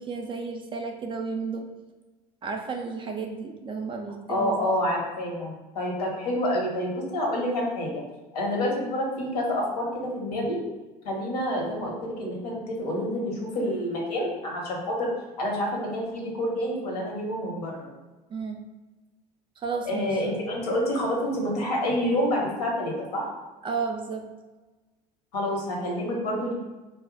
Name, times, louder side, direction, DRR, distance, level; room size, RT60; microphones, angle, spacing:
voice 1, 0.0-1.7 2.4-4.7 18.3-18.6 19.6-20.2 23.6-24.2, right 5 dB, 25° right, 3 dB, 0.3 m, -32 dB
voice 2, 4.3-8.0 8.3-10.6 11.0-15.1 15.4-17.9 19.8-23.3 25.3-26.5, left 1 dB, 75° left, -1 dB, 0.8 m, -28 dB
2.2 x 2.0 x 3.8 m, 1.2 s
figure-of-eight pair, 70°, 20 cm